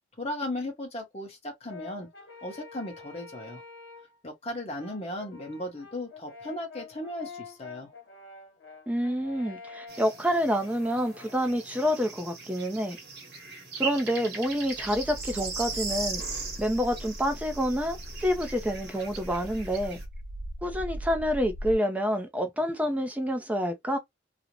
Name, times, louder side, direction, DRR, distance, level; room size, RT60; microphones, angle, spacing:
voice 1, 0.2-2.1 2.4-3.6 4.2-7.9, left 1 dB, 35° left, 0.9 m, -36 dB
Brass instrument, 1.7-4.2 4.8-11.7, left 4 dB, 80° left, 1.0 m, -47 dB
voice 2, 8.9-13.0 13.8-20.0 20.6-24.0, equal, 10° right, 0.4 m, -28 dB
sound 1, 9.9-20.0, right 4 dB, 60° right, 1.0 m, -39 dB
sound 2, 14.5-21.8, equal, 80° right, 0.5 m, -40 dB
2.5 x 2.0 x 2.8 m
head